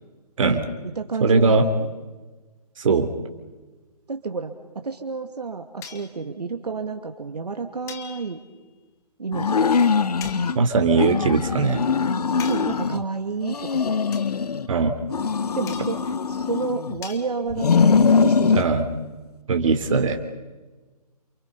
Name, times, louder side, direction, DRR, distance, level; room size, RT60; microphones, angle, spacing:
voice 1, 0.4-1.9 4.1-8.4 9.2-9.8 12.4-14.0 15.5-16.0 16.3-18.8, right 4 dB, 75° right, 5 dB, 2.3 m, -30 dB
voice 2, 1.2-1.6 2.8-3.1 10.5-11.8 14.7-14.9 18.6-18.8 19.5-20.3, right 4 dB, 55° right, 7 dB, 3.2 m, -20 dB
sound 1, 5.8-6.2 7.9-8.6 10.2-10.5 12.4-12.9 14.1-14.4 15.7-16.1 17.0-17.3, left 8 dB, 15° left, 1.8 m, -41 dB
sound 2, 9.3-10.6 11.0-13.0 13.4-14.7 15.1-17.0 17.5-18.7, left 5 dB, 70° left, 1.0 m, -22 dB
29.0 x 27.0 x 5.4 m, 1.2 s
figure-of-eight pair, 145°, 20 cm